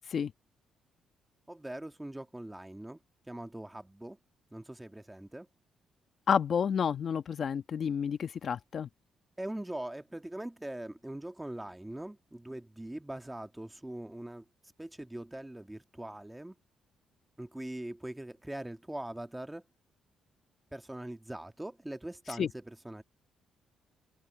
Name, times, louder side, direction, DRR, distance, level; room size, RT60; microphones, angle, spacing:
voice 1, 1.5-3.0 3.3-4.2 4.5-5.5 9.4-14.4 14.8-16.5 17.4-19.6 20.7-23.0, right 1 dB, 10° right, 1.5 m, -42 dB
voice 2, 6.3-8.9 22.4-22.5, left 7 dB, 55° left, 1.3 m, -30 dB
open air
cardioid pair, 90°, 0 cm